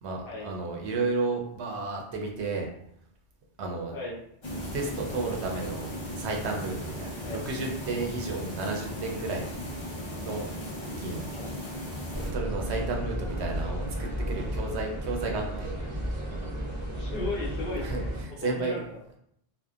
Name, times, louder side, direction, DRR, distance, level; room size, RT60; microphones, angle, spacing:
voice 1, 0.0-2.7 3.6-3.9 4.7-9.4 10.2-11.3 12.3-15.7 17.8-18.8, right 3 dB, 75° right, 1 dB, 0.8 m, -32 dB
sound 1, 4.4-12.3, left 1 dB, 35° left, 0.5 m, -37 dB
sound 2, 12.1-18.2, equal, 40° right, 0.4 m, -33 dB
voice 2, 16.9-18.1 18.4-19.2, left 2 dB, 60° left, -4 dB, 0.9 m, -36 dB
2.7 x 2.1 x 2.3 m, 0.72 s
omnidirectional pair, 1.2 m